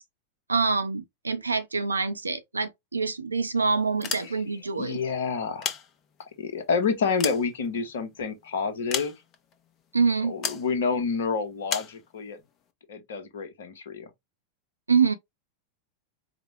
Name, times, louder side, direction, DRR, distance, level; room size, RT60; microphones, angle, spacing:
voice 1, 0.5-5.0 9.9-10.4 14.9-15.1, right 5 dB, 80° right, 0.5 m, -25 dB
sound 1, 3.9-4.7 5.4-6.4 6.9-8.1 8.9-9.5 10.4-10.7 11.7-12.0, left 7 dB, 30° left, 0.8 m, -33 dB
voice 2, 4.8-5.7 6.4-9.1 10.2-12.4 12.9-14.1, left 5 dB, 60° left, 0.9 m, -28 dB
4.9 x 2.1 x 3.0 m
figure-of-eight pair, 90°, 0 cm